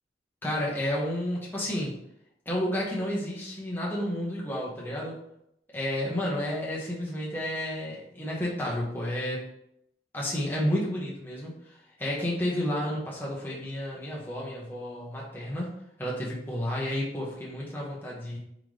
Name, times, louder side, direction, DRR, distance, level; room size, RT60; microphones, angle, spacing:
voice 1, 0.4-1.9 2.5-5.2 5.7-9.4 10.1-11.5 12.0-15.7 16.0-18.4, left 1 dB, 10° left, -5 dB, 1.1 m, -31 dB
3.7 x 3.5 x 3.2 m, 0.77 s
head